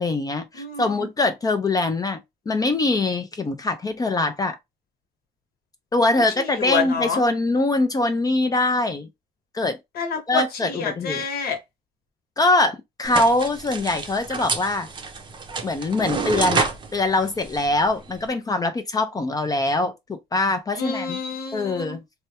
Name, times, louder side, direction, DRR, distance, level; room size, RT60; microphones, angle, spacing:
voice 1, 0.0-2.2 2.5-4.6 5.9-9.1 9.5-9.8 10.3-11.2 12.4-14.9 15.6-21.2 21.5-22.0, left 2 dB, 20° left, 0.4 m, -23 dB
voice 2, 0.6-1.1 6.3-7.2 9.9-11.6 20.7-22.0, left 5 dB, 65° left, 1.1 m, -28 dB
sound 1, 13.0-18.3, right 4 dB, 30° right, 0.6 m, -29 dB
3.3 x 2.2 x 2.8 m
cardioid pair, 110°, 17 cm